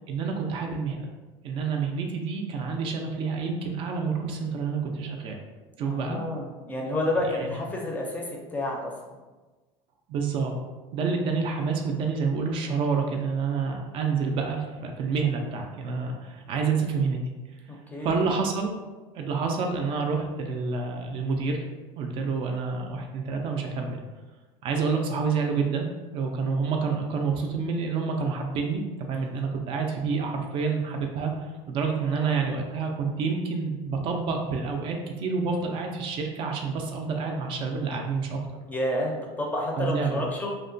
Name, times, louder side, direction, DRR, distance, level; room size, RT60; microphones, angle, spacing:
voice 1, 0.1-1.1 1.4-5.4 5.8-6.2 7.3-7.6 10.1-10.5 10.9-17.2 18.0-18.7 19.1-21.6 22.0-24.0 24.6-25.9 26.1-28.8 29.1-38.4 39.8-40.3, right 5 dB, 50° right, 2 dB, 0.4 m, -28 dB
voice 2, 5.8-8.2 8.5-8.9 17.7-18.3 32.0-32.4 38.7-40.5, left 1 dB, 15° left, -1 dB, 0.4 m, -30 dB
2.8 x 2.1 x 2.6 m, 1.3 s
cardioid pair, 135°, 12 cm